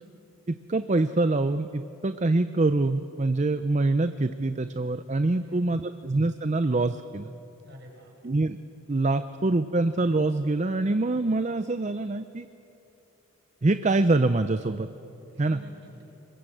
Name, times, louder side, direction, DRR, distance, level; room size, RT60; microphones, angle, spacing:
voice 1, 0.5-7.3 8.2-8.6 8.9-12.5 13.6-14.9 15.4-15.6, right 2 dB, 30° right, 11 dB, 0.5 m, -25 dB
voice 2, 5.4-5.9 7.6-8.1 15.3-16.0, equal, 50° right, 1 dB, 5.5 m, -48 dB
26.0 x 22.0 x 7.8 m, 2.9 s
head